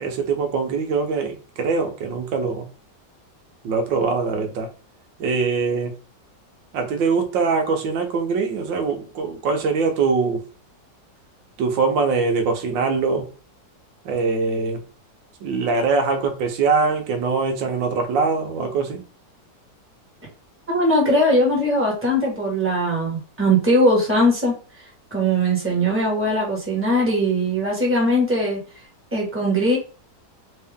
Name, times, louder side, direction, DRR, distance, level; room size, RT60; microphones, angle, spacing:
voice 1, 0.0-2.7 3.6-4.7 5.2-5.9 6.7-10.4 11.6-13.3 14.0-14.8 15.4-19.0, right 4 dB, 85° right, 5 dB, 1.6 m, -22 dB
voice 2, 20.7-24.5 25.1-28.6 29.1-29.8, equal, 10° right, -2 dB, 1.2 m, -20 dB
3.6 x 2.7 x 3.5 m, 0.36 s
omnidirectional pair, 2.0 m